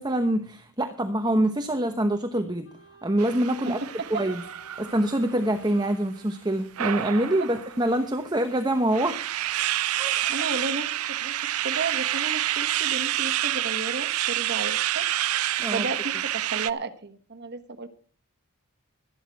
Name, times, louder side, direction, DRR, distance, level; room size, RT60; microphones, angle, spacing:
voice 1, 0.0-2.7 3.0-3.8 4.1-4.4 4.8-9.2 9.9-10.2 15.6-15.9, right 1 dB, 20° right, 7 dB, 1.0 m, -25 dB
Wind instrument woodwind instrument, 2.6-7.2, right 2 dB, 60° left, 2.4 m, -53 dB
sound 1, 3.2-5.8 6.8-7.9 8.5-8.6 8.9-16.7, right 13 dB, 80° right, 0.6 m, -28 dB
voice 2, 3.6-4.2 7.4-7.5 10.3-15.1 15.6-17.9, right 3 dB, 50° right, 10 dB, 1.4 m, -33 dB
13.0 x 11.5 x 4.8 m, 0.43 s
head